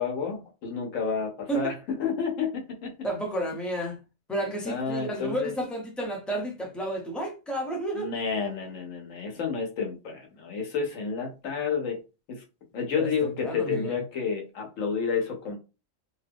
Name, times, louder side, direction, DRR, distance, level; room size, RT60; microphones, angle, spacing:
voice 1, 0.0-3.0 4.7-5.5 7.9-12.0 12.3-12.4 12.7-15.6, left 6 dB, 75° left, 1.2 m, -30 dB
voice 2, 3.0-4.0 4.3-8.1 13.0-14.0, right 1 dB, ahead, 0.4 m, -31 dB
2.5 x 2.3 x 3.4 m
omnidirectional pair, 1.3 m